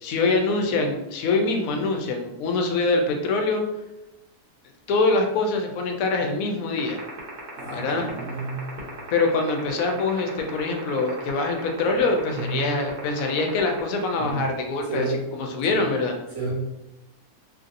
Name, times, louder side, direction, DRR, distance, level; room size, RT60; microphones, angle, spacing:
voice 1, 0.0-3.6 4.9-7.0 7.7-8.1 9.1-15.1 15.3-16.1, left 3 dB, 70° left, 3 dB, 0.9 m, -24 dB
sound 1, 6.8-14.3, right 7 dB, 90° right, 1.4 m, -37 dB
voice 2, 7.6-8.7 11.8-11.9 12.3-12.7 14.1-14.5 14.8-15.2 15.6-15.8 16.3-16.5, right 3 dB, 60° right, -6 dB, 1.6 m, -31 dB
3.1 x 2.6 x 2.5 m, 0.95 s
omnidirectional pair, 1.6 m